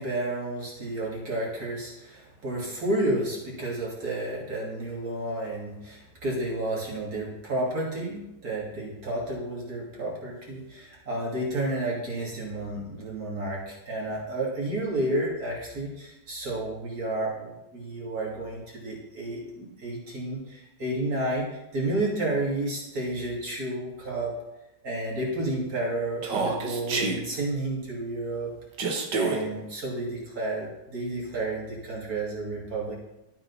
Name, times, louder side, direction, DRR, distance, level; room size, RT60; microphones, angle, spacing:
voice 1, 0.0-24.3 24.8-28.5 29.1-32.9, right 1 dB, 55° right, -5 dB, 3.6 m, -31 dB
Human voice, 26.2-27.2 28.8-29.4, right 4 dB, 90° right, 2.1 m, -27 dB
12.5 x 8.6 x 4.2 m, 0.94 s
omnidirectional pair, 1.8 m